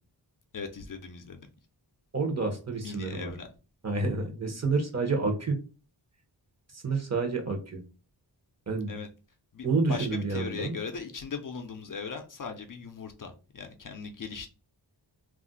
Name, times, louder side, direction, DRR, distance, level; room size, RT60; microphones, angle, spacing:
voice 1, 0.5-1.5 2.7-3.5 8.9-9.1 9.5-14.5, left 5 dB, 45° left, 0.5 m, -39 dB
voice 2, 2.1-3.3 3.8-5.6 6.7-7.8 8.7-9.0 9.6-10.8, right 3 dB, 35° right, 0.8 m, -29 dB
2.4 x 2.0 x 3.8 m
wide cardioid pair, 85°, 44 cm